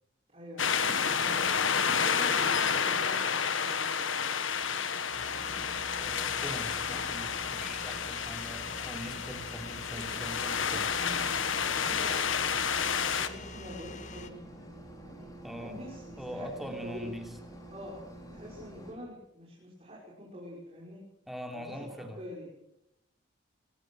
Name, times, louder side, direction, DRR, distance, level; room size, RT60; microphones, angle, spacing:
voice 1, 0.3-1.5 1.8-4.3 9.9-10.1 11.0-11.2 11.7-14.4 15.0-15.3 15.5-17.1 17.7-18.0 18.3-21.0 21.5-22.5, left 1 dB, 30° right, -4 dB, 5.5 m, -46 dB
sound 1, 0.6-13.3, left 6 dB, 80° left, 1.7 m, -30 dB
sound 2, 5.1-14.3, left 3 dB, 35° left, 1.7 m, -46 dB
sound 3, 5.3-18.9, right 1 dB, 20° left, 4.3 m, -50 dB
voice 2, 6.0-11.0 15.4-15.8 16.2-17.3 21.3-22.2, equal, ahead, 3 dB, 3.1 m, -42 dB
24.0 x 20.0 x 6.4 m, 0.81 s
head